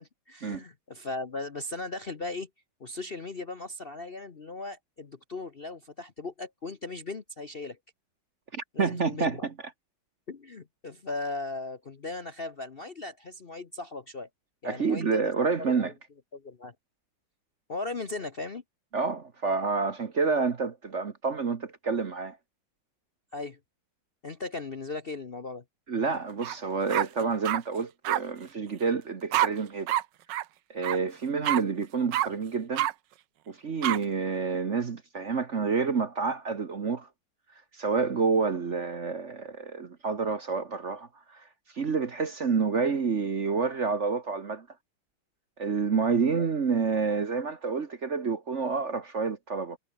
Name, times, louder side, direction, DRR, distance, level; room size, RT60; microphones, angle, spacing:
voice 1, 0.0-2.5 2.8-7.8 8.7-9.4 10.3-14.3 14.6-15.9 16.3-16.7 17.7-18.6 23.3-23.6 24.2-25.6, left 3 dB, 35° left, 1.0 m, -37 dB
voice 2, 8.5-9.5 14.6-15.9 18.9-22.4 25.9-30.0 30.7-32.9 33.5-37.1 37.7-41.4 41.7-44.7 45.6-49.8, right 5 dB, 40° right, 1.3 m, -28 dB
sound 1, 26.4-26.6 26.9-27.6 28.0-28.2 29.3-29.5 29.9-30.0 30.3-30.4 30.8-31.0 31.4-31.6 32.1-32.3 32.7-32.9 33.8-34.0, right 13 dB, 70° right, 1.3 m, -26 dB
omnidirectional pair, 2.2 m